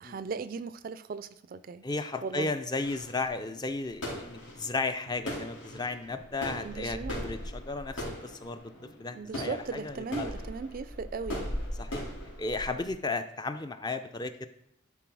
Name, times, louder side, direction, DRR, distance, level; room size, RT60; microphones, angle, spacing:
voice 1, 0.0-1.8 2.2-2.5 6.6-7.2 9.1-11.5, right 5 dB, 45° right, 14 dB, 0.3 m, -37 dB
voice 2, 1.8-8.7 9.0-10.3 11.8-12.0 12.4-14.5, left 3 dB, 20° left, 10 dB, 0.4 m, -34 dB
sound 1, 2.8-12.9, equal, 75° left, 3.1 m, -39 dB
10.5 x 4.1 x 4.6 m, 0.77 s
head